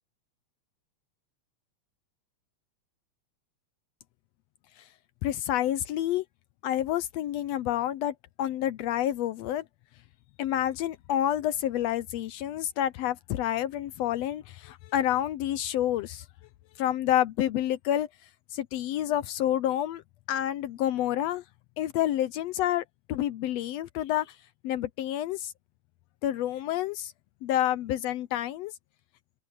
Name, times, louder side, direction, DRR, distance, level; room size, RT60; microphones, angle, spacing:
voice 1, 5.2-6.2 6.6-9.6 10.4-16.2 16.8-18.1 18.5-20.0 20.3-21.4 21.8-24.4 24.6-25.5 26.2-27.1 27.4-28.7, left 12 dB, 80° left, 1.6 m, -28 dB
omnidirectional pair, 3.3 m